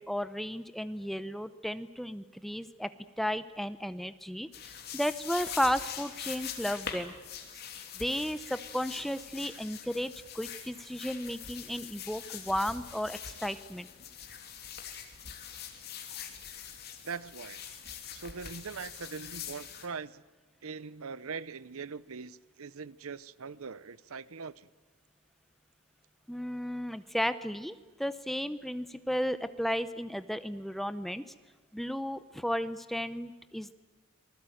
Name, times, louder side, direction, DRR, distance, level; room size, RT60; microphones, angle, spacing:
voice 1, 0.0-2.9 3.2-7.1 7.9-13.9 26.3-31.2 31.7-33.7, equal, ahead, 12 dB, 0.7 m, -34 dB
sound 1, 4.5-19.9, left 8 dB, 45° left, 3.1 m, -43 dB
voice 2, 17.0-17.6 18.1-20.2 20.6-24.7, right 5 dB, 80° right, 18 dB, 0.7 m, -41 dB
26.5 x 20.0 x 9.2 m, 1.2 s
head